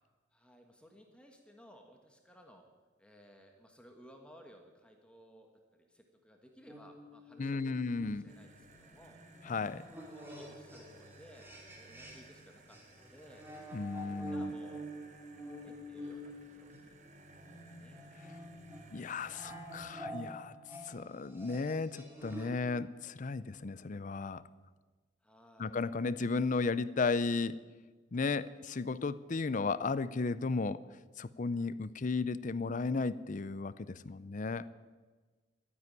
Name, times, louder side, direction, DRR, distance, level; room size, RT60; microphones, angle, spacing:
voice 1, 0.3-2.6 3.0-9.2 10.1-11.5 11.7-13.4 14.1-14.9 15.2-17.0 17.6-18.0 25.2-25.8, equal, 5° left, 3 dB, 1.4 m, -59 dB
sound 1, 6.7-12.4 12.7-22.7, equal, 10° right, 2.5 m, -47 dB
voice 2, 7.4-8.2 9.5-9.8 13.7-14.5 18.9-20.6 20.8-24.4 25.6-27.6 28.1-30.8 31.2-34.7, left 4 dB, 45° left, 17 dB, 0.5 m, -34 dB
sound 2, 8.3-20.0, right 3 dB, 40° right, 1.5 m, -59 dB
12.5 x 9.7 x 9.7 m, 1.3 s
head